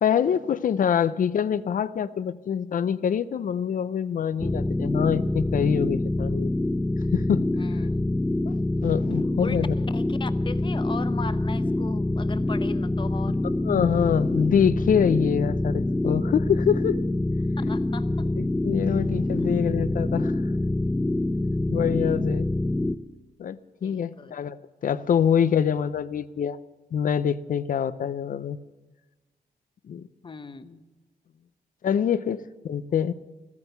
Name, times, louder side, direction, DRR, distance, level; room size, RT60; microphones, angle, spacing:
voice 1, 0.0-6.5 7.1-7.5 8.8-9.7 13.6-17.0 17.6-17.7 18.4-20.3 21.7-22.4 23.4-24.6 24.8-26.6 26.9-28.6 29.9-30.0 31.8-33.1, left 8 dB, 55° left, 16 dB, 0.6 m, -25 dB
sound 1, 4.4-23.0, left 2 dB, 10° left, 0.4 m, -26 dB
voice 2, 7.6-8.1 8.9-9.0 9.4-9.7 9.9-13.4 17.6-18.3 23.8-24.3 30.2-30.8, left 4 dB, 30° left, 12 dB, 0.8 m, -38 dB
14.5 x 14.0 x 6.7 m, 1.2 s
cardioid pair, 100°, 16 cm